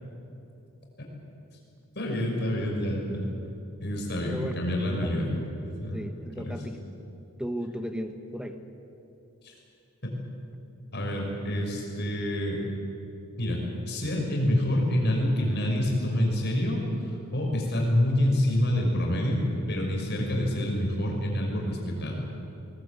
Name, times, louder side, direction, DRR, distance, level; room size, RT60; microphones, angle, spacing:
voice 1, 1.9-3.3 3.8-5.3 5.6-6.0 6.4-6.6 9.4-9.5 10.0-10.1 10.9-12.6 13.4-19.4 19.7-22.3, left 1 dB, 50° left, 0 dB, 5.8 m, -27 dB
voice 2, 4.3-5.1 5.9-6.8 7.4-8.6, equal, 5° right, 7 dB, 1.2 m, -35 dB
21.5 x 20.5 x 8.3 m, 2.8 s
head